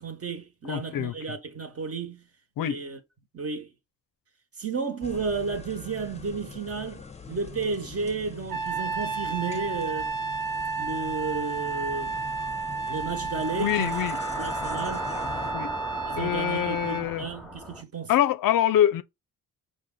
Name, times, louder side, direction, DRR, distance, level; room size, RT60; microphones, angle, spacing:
voice 1, 0.0-2.3 2.6-3.0 3.3-3.7 4.6-10.1 10.8-12.2 12.9-14.0 14.4-15.1 16.1-18.1, right 4 dB, 35° right, 1.3 m, -33 dB
voice 2, 0.7-1.1 2.6-2.8 13.6-14.2 15.5-15.7 16.2-17.3 18.1-19.0, left 11 dB, 60° left, 0.6 m, -25 dB
sound 1, 5.0-15.5, left 5 dB, 15° left, 0.7 m, -43 dB
Trumpet, 8.5-17.1, right 4 dB, 55° right, 0.7 m, -32 dB
sound 2, 13.3-17.8, left 1 dB, ahead, 1.0 m, -37 dB
5.0 x 2.5 x 3.8 m
hypercardioid pair, 50°, 38 cm